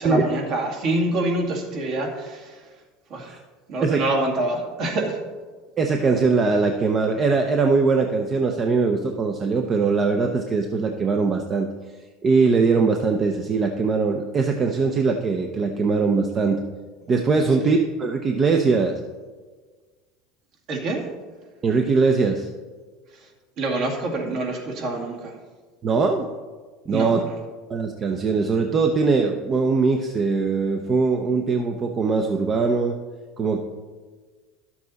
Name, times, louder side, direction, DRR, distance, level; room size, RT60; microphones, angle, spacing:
voice 1, 0.0-2.6 3.1-3.4 3.7-5.2 17.6-17.7 20.7-21.0 23.6-25.3 26.9-27.3, right 2 dB, 55° right, 1 dB, 2.0 m, -26 dB
voice 2, 5.8-11.7 12.2-16.6 17.1-18.9 21.6-22.5 25.8-26.3 26.8-27.2 27.7-32.9 33.4-33.6, right 4 dB, 30° right, 4 dB, 0.7 m, -21 dB
11.5 x 7.2 x 4.1 m, 1.4 s
supercardioid pair, 120°, 0 cm